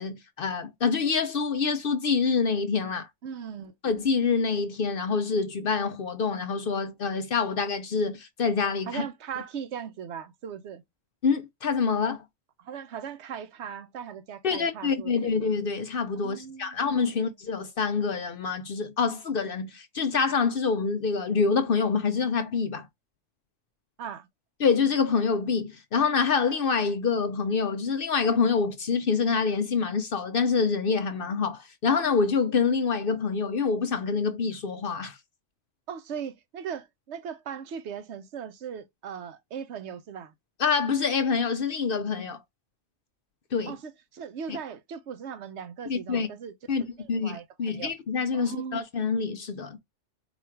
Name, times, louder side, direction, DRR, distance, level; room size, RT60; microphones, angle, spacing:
voice 1, 0.0-3.1 3.8-9.1 11.2-12.2 14.4-22.9 24.6-35.2 40.6-42.4 43.5-43.8 44.5-44.6 45.9-46.3 46.7-46.8 47.1-49.8, left 5 dB, 55° left, 0.7 m, -26 dB
voice 2, 3.2-3.7 8.9-10.8 12.6-15.3 16.2-16.8 17.1-17.3 24.0-24.3 35.9-40.3 43.7-46.5 47.0-47.9 48.3-48.8, right 7 dB, 70° right, 0.9 m, -38 dB
4.1 x 2.4 x 4.4 m
omnidirectional pair, 1.3 m